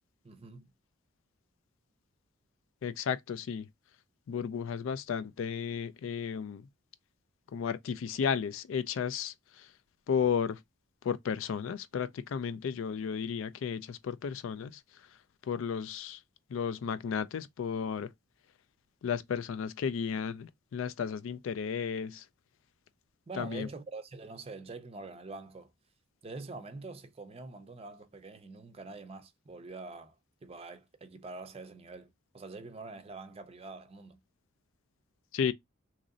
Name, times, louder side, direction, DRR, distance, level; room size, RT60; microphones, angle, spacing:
voice 1, 0.2-0.7 23.3-25.7 26.2-30.2 30.4-34.2, right 3 dB, 30° right, 0.5 m, -45 dB
voice 2, 2.8-3.7 4.3-6.7 7.5-9.7 10.1-10.6 11.0-15.1 15.4-16.2 16.5-18.1 19.0-22.3 23.4-23.7 35.3-35.5, left 7 dB, 65° left, 0.3 m, -33 dB
3.0 x 2.5 x 3.8 m
head